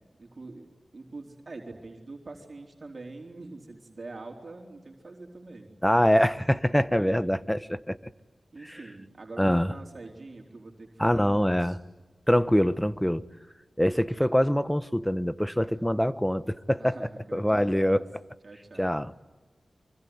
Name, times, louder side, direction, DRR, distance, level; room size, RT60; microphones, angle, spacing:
voice 1, 0.2-0.7 0.9-5.7 7.0-7.2 8.5-11.8 16.8-18.0 18.4-18.9, right 3 dB, 55° right, 4.1 m, -44 dB
voice 2, 5.8-8.1 8.7-8.8 9.4-9.7 11.0-11.8 12.3-13.2 13.8-18.0 18.8-19.1, equal, 5° left, 1.1 m, -24 dB
25.5 x 24.5 x 9.6 m
cardioid pair, 45°, 0 cm